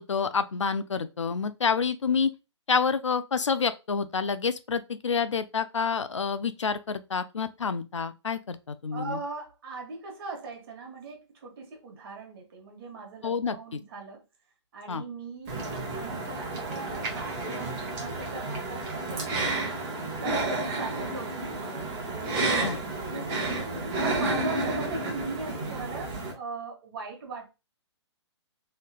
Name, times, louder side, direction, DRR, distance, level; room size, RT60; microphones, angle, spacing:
voice 1, 0.0-2.3 2.7-9.2 13.2-13.6 14.9-15.0 22.6-22.8 24.2-24.4, left 5 dB, 85° left, 0.4 m, -28 dB
voice 2, 8.9-14.2 14.7-19.8 20.2-23.5 24.0-27.5, right 4 dB, 50° right, 1.2 m, -40 dB
sound 1, 15.5-26.3, right 2 dB, 30° right, 1.1 m, -31 dB
3.2 x 2.8 x 2.4 m
figure-of-eight pair, 130°, 15 cm